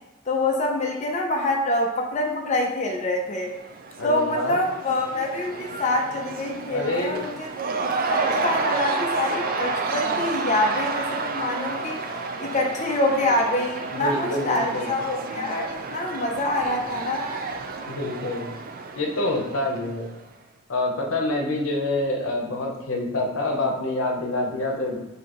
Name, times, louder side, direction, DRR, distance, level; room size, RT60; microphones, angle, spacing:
voice 1, 0.3-3.5 4.0-7.5 7.8-12.0 12.4-17.3, left 2 dB, 35° left, 0 dB, 0.6 m, -26 dB
Cheering / Crowd, 3.3-20.2, right 4 dB, 45° right, 0.4 m, -30 dB
voice 2, 4.0-4.6 6.7-7.3 13.9-14.9 17.9-18.5 19.0-20.1 20.7-25.0, left 2 dB, 85° left, 1 dB, 0.8 m, -26 dB
6.3 x 2.8 x 3.0 m, 1.1 s
head